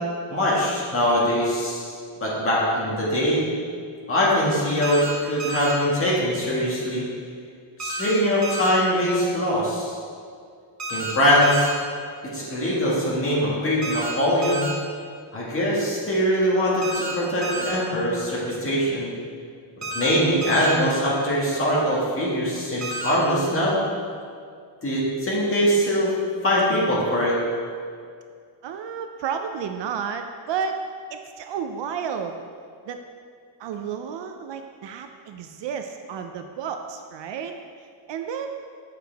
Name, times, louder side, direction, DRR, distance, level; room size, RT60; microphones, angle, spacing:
voice 1, 0.3-1.9 2.2-3.4 4.1-7.0 7.8-9.9 10.9-11.7 12.3-14.7 15.3-19.1 19.9-23.8 24.8-26.1 26.4-27.4, equal, 25° left, -6 dB, 1.8 m, -22 dB
sound 1, 4.8-5.1 5.4-5.7 7.8-8.1 8.4-8.7 10.8-11.1 11.4-11.7 13.8-14.1 14.4-14.7 16.8-17.1 17.4-17.7 19.8-20.1 20.4-20.7 22.8-23.1, right 2 dB, 35° right, 1.1 m, -30 dB
voice 2, 28.6-30.8 31.1-32.4 32.9-33.0 33.6-37.5 38.1-38.6, right 7 dB, 60° right, 6 dB, 0.5 m, -31 dB
7.8 x 6.6 x 3.4 m, 2.2 s
cardioid pair, 170°, 49 cm